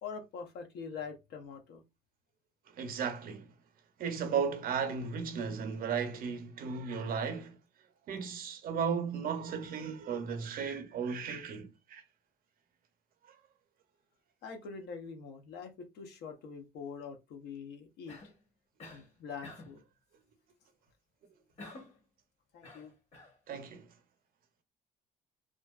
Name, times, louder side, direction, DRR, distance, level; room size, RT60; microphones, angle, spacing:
voice 1, 0.0-1.8 14.4-18.2 18.9-19.8 22.5-22.9, left 5 dB, 75° left, 0.6 m, -44 dB
voice 2, 2.7-3.5 4.0-7.6 8.1-12.0 23.5-23.9, right 6 dB, 60° right, 0.6 m, -35 dB
Cough, 18.1-18.4 18.8-19.1 19.4-19.8 21.6-22.0 22.6-23.4, left 2 dB, 40° left, 0.9 m, -49 dB
2.5 x 2.3 x 2.2 m
cardioid pair, 110°, 17 cm